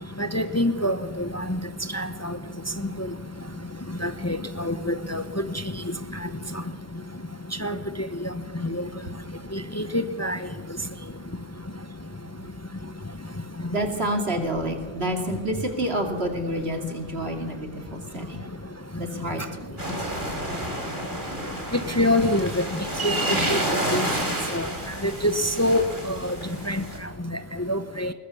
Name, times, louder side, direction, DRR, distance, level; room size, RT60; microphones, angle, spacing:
voice 1, 0.2-1.6 1.9-2.4 4.0-5.2 7.6-7.8 8.8-8.9 9.5-10.4 22.0-22.6 23.0-23.6 23.9-24.1 24.5-24.7 25.0-25.3 25.6-26.4 26.7-26.8 27.7-28.1, left 1 dB, 15° left, 10 dB, 0.8 m, -25 dB
voice 2, 13.7-18.5 19.0-20.1, right 1 dB, 75° right, 4 dB, 2.8 m, -29 dB
Sea and seagulls stereo, 19.8-27.0, right 1 dB, 50° right, 3.8 m, -30 dB
21.0 x 21.0 x 7.0 m, 1.4 s
omnidirectional pair, 1.1 m